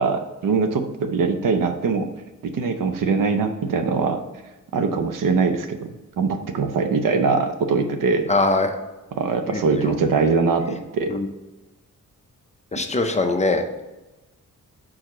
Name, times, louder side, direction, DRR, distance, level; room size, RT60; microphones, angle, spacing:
voice 1, 0.0-2.1 2.4-4.2 4.7-5.9 6.2-8.3 9.1-11.1, right 4 dB, 85° right, 8 dB, 0.7 m, -22 dB
voice 2, 8.3-8.8 9.5-9.9 11.1-11.3 12.7-13.8, left 2 dB, 20° left, 6 dB, 0.5 m, -22 dB
4.7 x 4.4 x 4.8 m, 1.1 s
wide cardioid pair, 145°, 32 cm